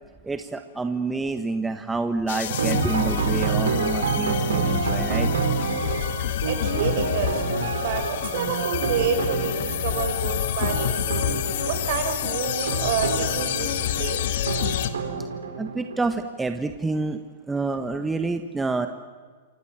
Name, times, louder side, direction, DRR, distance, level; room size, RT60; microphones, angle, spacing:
voice 1, 0.2-5.3 15.6-17.2 17.5-18.9, right 3 dB, 10° right, 7 dB, 1.5 m, -28 dB
sound 1, 2.3-14.9, left 10 dB, 60° left, 2.0 m, -28 dB
sound 2, 2.5-16.0, right 5 dB, 75° right, 4.8 m, -28 dB
voice 2, 6.4-7.4 7.8-11.3 11.7-14.3, right 7 dB, 55° right, 8 dB, 5.6 m, -29 dB
28.5 x 25.5 x 7.6 m, 1.5 s
hypercardioid pair, 105°, 0 cm